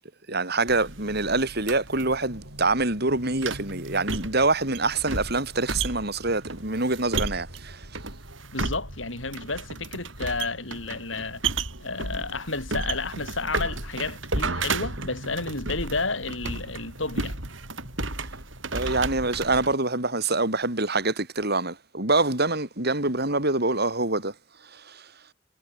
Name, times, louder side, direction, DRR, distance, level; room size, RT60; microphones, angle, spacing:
voice 1, 0.3-7.8 18.7-24.3 24.7-25.0, right 2 dB, 55° right, 7.2 m, -25 dB
sound 1, 0.7-19.7, right 3 dB, 80° right, 7.4 m, -33 dB
voice 2, 8.5-11.4 11.8-17.4, left 3 dB, 75° left, 7.4 m, -31 dB
head